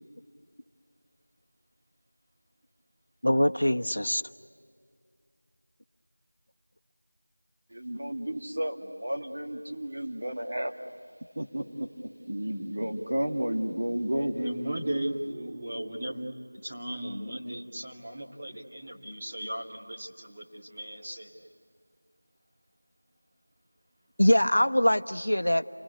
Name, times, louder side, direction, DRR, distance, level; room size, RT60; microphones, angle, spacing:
voice 1, 3.2-4.2 24.2-25.7, left 1 dB, 85° left, 8 dB, 1.1 m, -23 dB
voice 2, 7.7-10.7 11.4-11.9 12.3-14.4, right 1 dB, 45° right, 1 dB, 2.1 m, -32 dB
voice 3, 14.1-21.5, right 1 dB, 20° right, -3 dB, 2.2 m, -36 dB
29.0 x 21.0 x 9.6 m, 2.3 s
figure-of-eight pair, 175°, 0 cm